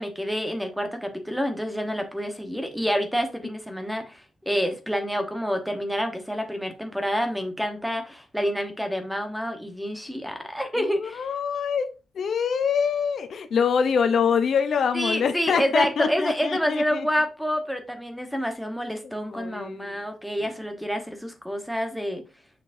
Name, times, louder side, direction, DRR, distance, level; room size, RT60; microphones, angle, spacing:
voice 1, 0.0-11.3 14.9-22.2, equal, ahead, 1.1 m, -28 dB
voice 2, 10.8-17.1 19.3-20.0 20.4-20.5, left 6 dB, 65° left, 0.7 m, -25 dB
6.7 x 6.0 x 2.7 m
wide cardioid pair, 135°, 0 cm